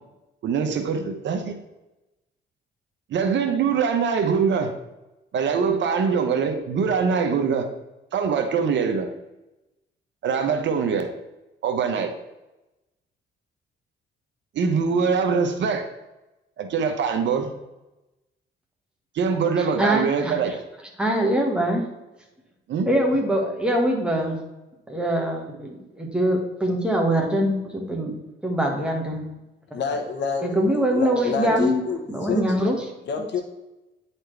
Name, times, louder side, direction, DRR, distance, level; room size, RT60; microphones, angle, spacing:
voice 1, 0.4-1.6 3.1-4.7 5.3-7.7 8.1-9.1 10.2-11.1 11.6-12.1 14.5-15.9 16.6-17.5 19.1-20.5 22.7-22.9, right 6 dB, 65° right, 6 dB, 0.9 m, -23 dB
voice 2, 19.6-20.4 21.0-21.8 22.9-24.4 24.9-28.1 28.4-29.2 30.4-31.8 32.1-32.9, right 1 dB, 5° right, -1 dB, 1.7 m, -23 dB
voice 3, 29.7-32.5 33.0-33.4, left 5 dB, 60° left, 4 dB, 1.2 m, -28 dB
9.5 x 4.3 x 3.4 m, 1.0 s
cardioid pair, 90°, 20 cm